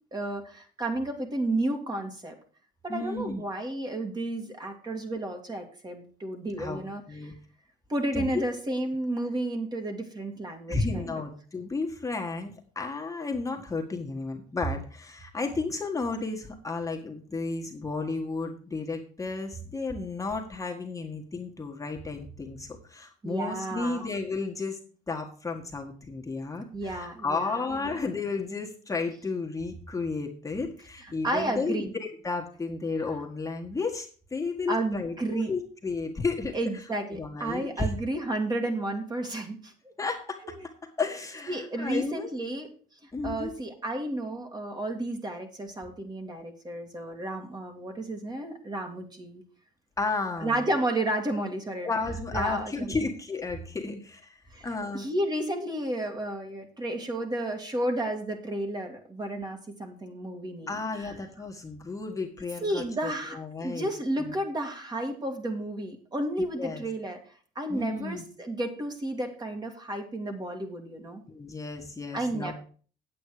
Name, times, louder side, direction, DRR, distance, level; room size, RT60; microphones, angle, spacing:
voice 1, 0.1-2.4 2.8-7.0 7.9-11.2 23.2-24.0 26.7-27.7 31.0-31.9 34.7-35.5 36.5-39.7 41.5-42.7 43.0-49.4 50.4-51.9 52.3-53.0 53.9-54.0 54.5-54.7 54.9-61.2 62.6-67.2 67.6-71.2 72.1-72.5, right 1 dB, 25° right, 4 dB, 2.2 m, -32 dB
voice 2, 2.9-3.4 6.6-6.8 7.1-7.3 8.1-8.4 10.7-24.8 25.1-36.6 37.1-37.9 40.0-40.5 41.0-42.3 43.1-43.5 50.0-50.6 51.8-55.0 60.7-63.9 64.2-64.3 66.6-66.8 67.7-68.2 71.3-72.5, left 3 dB, 20° left, 1 dB, 1.6 m, -33 dB
8.6 x 8.5 x 4.9 m, 0.41 s
cardioid pair, 110°, 17 cm